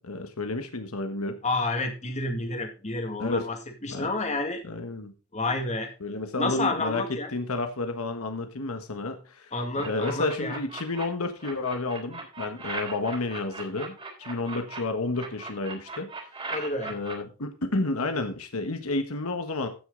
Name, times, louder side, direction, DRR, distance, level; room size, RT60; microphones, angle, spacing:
voice 1, 0.0-1.4 3.2-3.5 3.9-4.1 4.6-5.1 6.0-7.0 7.3-9.5 9.8-13.9 14.2-16.1 16.9-19.7, left 2 dB, 80° left, 7 dB, 1.4 m, -31 dB
voice 2, 1.4-3.6 3.8-4.6 5.3-5.9 6.4-7.3 9.5-10.6 16.5-16.9, left 2 dB, 35° left, 5 dB, 2.1 m, -29 dB
sound 1, 9.8-11.0 11.4-14.8 15.1-17.1, right 3 dB, 25° right, 3.6 m, -38 dB
15.0 x 6.5 x 3.8 m, 0.34 s
head